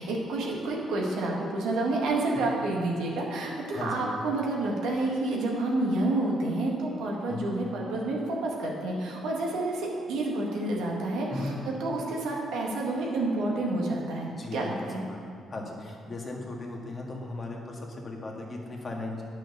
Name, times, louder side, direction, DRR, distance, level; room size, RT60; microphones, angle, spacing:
voice 1, 0.0-15.0, right 2 dB, 85° right, -2 dB, 1.9 m, -29 dB
voice 2, 3.7-4.1 7.3-7.5 11.3-11.5 14.3-15.2 15.5-19.2, left 2 dB, 35° left, 0 dB, 1.8 m, -37 dB
9.2 x 6.3 x 6.8 m, 2.3 s
cardioid pair, 90°, 0 cm